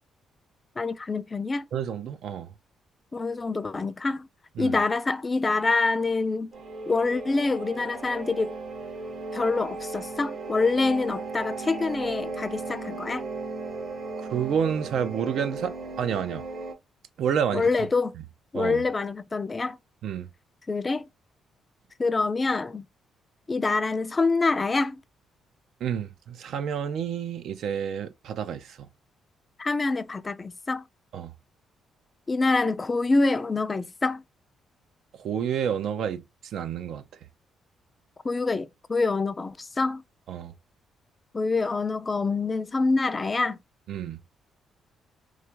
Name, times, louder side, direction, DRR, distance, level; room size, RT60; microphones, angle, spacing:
voice 1, 0.8-1.6 3.1-4.3 4.6-6.5 6.9-8.5 9.3-13.3 17.5-18.1 18.5-19.8 20.7-21.1 22.0-22.8 23.5-25.0 29.6-30.8 32.3-34.2 38.2-40.0 41.3-43.6, left 3 dB, 25° left, 0.4 m, -26 dB
voice 2, 1.7-2.5 4.6-4.8 14.3-16.5 17.2-17.7 18.5-18.8 20.0-20.3 25.8-28.9 31.1-31.3 35.1-37.0 40.3-40.5 43.9-44.2, right 8 dB, 75° right, 0.4 m, -29 dB
sound 1, 6.5-16.7, right 3 dB, 55° right, 0.9 m, -36 dB
3.1 x 2.5 x 3.3 m
cardioid pair, 90°, 0 cm